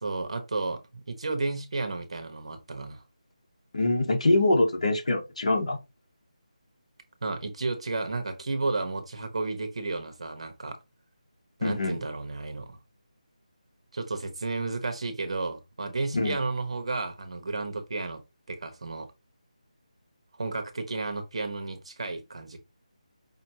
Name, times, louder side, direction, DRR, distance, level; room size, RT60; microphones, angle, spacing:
voice 1, 0.0-3.0 7.2-10.8 11.6-12.8 13.9-18.2 18.5-19.1 20.4-22.6, right 3 dB, 50° right, 1.1 m, -32 dB
voice 2, 3.7-5.8 11.6-12.0 16.1-16.4, left 2 dB, 60° left, 1.4 m, -24 dB
5.4 x 2.9 x 2.8 m
figure-of-eight pair, 170°, 4 cm